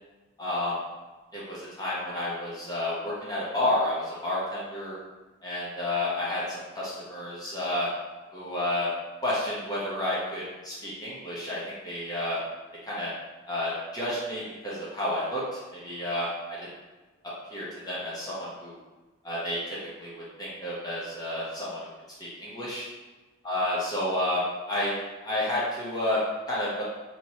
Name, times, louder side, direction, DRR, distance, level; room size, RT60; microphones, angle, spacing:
voice 1, 0.4-0.8 1.3-5.0 5.4-7.9 8.3-8.9 9.2-12.4 12.9-13.1 13.5-16.3 16.6-16.7 17.5-18.8 19.2-20.1 20.4-21.8 22.2-22.9 23.4-24.9 25.2-26.2 26.5-26.8, left 1 dB, 20° left, -8 dB, 0.8 m, -30 dB
3.0 x 2.9 x 2.8 m, 1.2 s
head